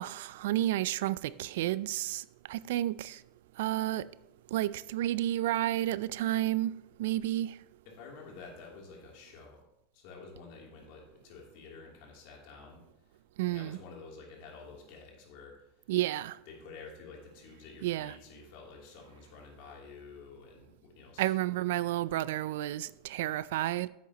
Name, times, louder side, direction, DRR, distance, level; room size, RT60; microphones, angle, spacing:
voice 1, 0.0-3.2 3.6-4.1 4.5-7.6 13.4-13.8 15.9-16.4 17.8-18.1 21.2-23.9, right 14 dB, 75° right, 0.3 m, -31 dB
voice 2, 7.8-9.7 9.9-12.8 13.1-13.2 13.4-15.6 16.5-21.3, left 4 dB, 65° left, 2.8 m, -50 dB
10.5 x 8.3 x 2.9 m
supercardioid pair, 110°, 0 cm